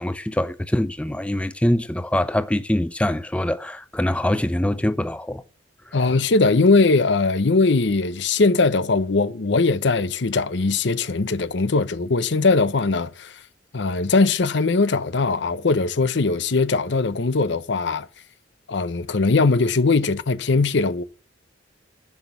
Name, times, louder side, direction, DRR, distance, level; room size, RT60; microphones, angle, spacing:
voice 1, 0.0-5.4, left 1 dB, 5° left, 0.5 m, -24 dB
voice 2, 5.9-13.4 13.7-18.1 18.7-21.0, left 3 dB, 65° left, 0.7 m, -20 dB
10.5 x 6.2 x 8.6 m
head